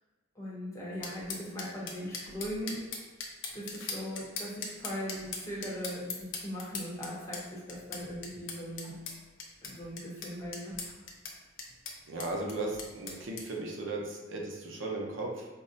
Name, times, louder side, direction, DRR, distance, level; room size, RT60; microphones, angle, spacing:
voice 1, 0.3-2.8 3.5-9.0 9.6-10.7, equal, 15° left, -6 dB, 0.8 m, -39 dB
sound 1, 1.0-13.5, left 4 dB, 70° left, 0.6 m, -41 dB
voice 2, 12.1-15.5, right 2 dB, 70° right, 0 dB, 0.6 m, -36 dB
5.2 x 2.1 x 2.5 m, 1.3 s
head